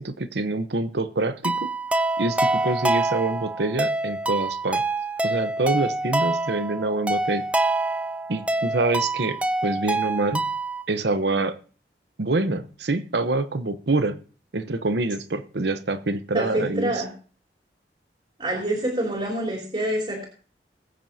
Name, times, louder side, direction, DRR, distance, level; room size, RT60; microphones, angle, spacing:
voice 1, 0.0-1.7 2.2-4.8 5.2-7.4 8.3-10.5 10.9-11.6 12.2-14.2 14.5-17.0, right 2 dB, 75° right, 11 dB, 0.9 m, -26 dB
sound 1, 1.4-10.8, right 2 dB, 5° right, 0.5 m, -26 dB
voice 2, 16.3-17.1 18.4-20.3, right 1 dB, 30° right, -3 dB, 3.5 m, -26 dB
21.0 x 9.2 x 2.8 m, 0.39 s
head